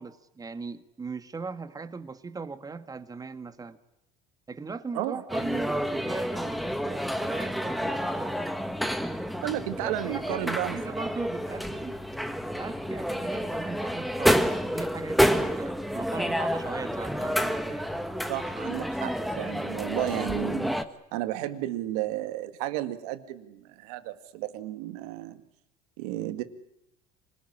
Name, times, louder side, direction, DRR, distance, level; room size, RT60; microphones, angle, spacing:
voice 1, 0.0-3.8 4.5-8.4 9.8-12.0 12.3-17.9, right 4 dB, 20° right, 10 dB, 1.6 m, -38 dB
sound 1, 5.3-20.8, equal, ahead, 1.5 m, -29 dB
voice 2, 9.4-10.8 18.3-20.7 21.1-25.4 26.0-26.4, right 14 dB, 90° right, 10 dB, 2.0 m, -33 dB
26.0 x 19.5 x 9.9 m, 0.84 s
supercardioid pair, 115°, 19 cm